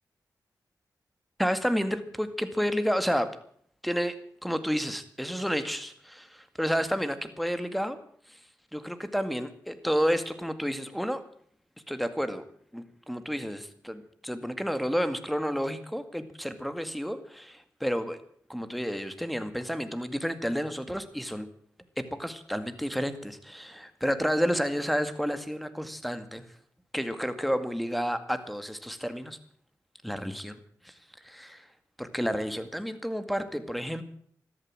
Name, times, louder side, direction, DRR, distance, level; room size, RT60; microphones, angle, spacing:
voice 1, 1.4-3.3 3.8-4.2 4.4-8.0 8.7-11.2 11.9-12.4 12.7-18.2 18.5-21.5 22.0-26.4 26.9-29.4 30.0-30.6 30.8-30.9 31.2-31.7 32.0-34.0, equal, ahead, 10 dB, 2.1 m, -30 dB
13.5 x 12.5 x 7.7 m, 0.62 s
cardioid pair, 50°, 7 cm